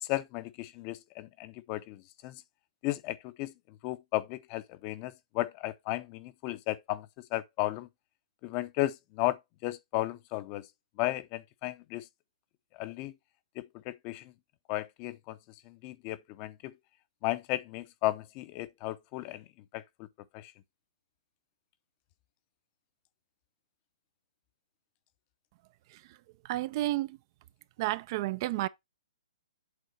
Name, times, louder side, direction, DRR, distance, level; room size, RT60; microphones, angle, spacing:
voice 1, 0.0-2.4 2.8-7.9 8.4-10.7 11.0-12.1 12.7-13.1 13.6-14.3 14.7-15.4 15.6-16.7 17.2-19.4 19.7-20.1 20.3-20.5, left 17 dB, 35° left, 0.7 m, -35 dB
voice 2, 26.4-27.2 27.8-28.7, right 16 dB, 40° right, 0.4 m, -31 dB
8.1 x 3.8 x 4.5 m
figure-of-eight pair, 125°, 3 cm